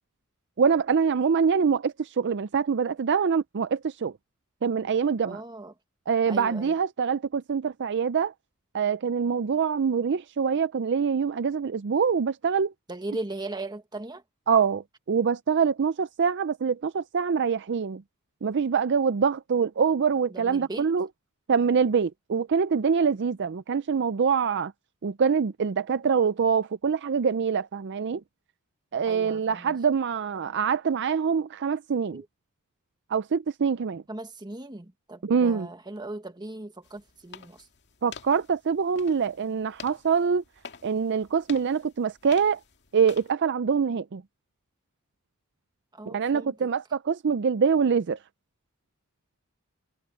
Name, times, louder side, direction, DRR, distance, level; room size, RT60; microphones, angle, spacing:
voice 1, 0.6-4.1 4.6-5.4 6.1-8.3 8.7-12.7 14.5-18.0 18.4-21.1 21.5-24.7 25.0-28.2 28.9-32.2 33.1-34.0 35.2-35.7 38.0-40.4 40.8-42.6 42.9-44.2 46.1-48.2, right 6 dB, 55° right, 0.4 m, -25 dB
voice 2, 5.2-5.7 6.3-6.8 12.9-14.2 20.3-20.9 29.1-29.8 32.1-32.3 34.1-37.7 45.9-46.7, right 2 dB, 20° right, 1.5 m, -38 dB
sound 1, 36.8-43.3, left 6 dB, 50° left, 2.2 m, -48 dB
head